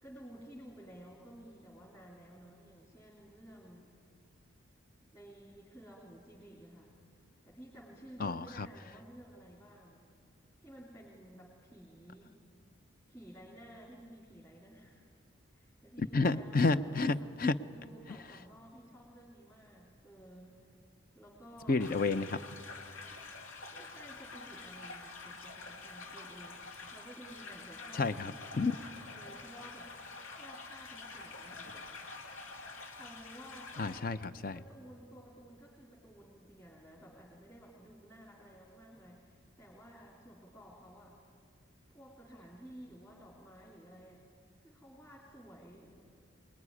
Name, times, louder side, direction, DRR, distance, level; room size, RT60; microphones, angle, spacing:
voice 1, 0.0-3.9 5.1-6.9 7.4-10.1 10.6-12.3 13.1-15.1 15.5-17.3 17.7-20.7 21.1-22.0 23.1-28.4 28.9-30.0 30.3-31.7 32.9-34.1 34.4-41.2 41.9-44.3 44.6-46.0, equal, 15° left, -5 dB, 3.4 m, -54 dB
voice 2, 8.2-8.7 16.1-17.6 21.7-22.4 27.9-28.7 33.8-34.6, left 3 dB, 45° left, 12 dB, 0.7 m, -30 dB
sound 1, 21.8-34.0, left 3 dB, 85° left, 2.5 m, -47 dB
25.5 x 20.5 x 9.8 m, 2.3 s
head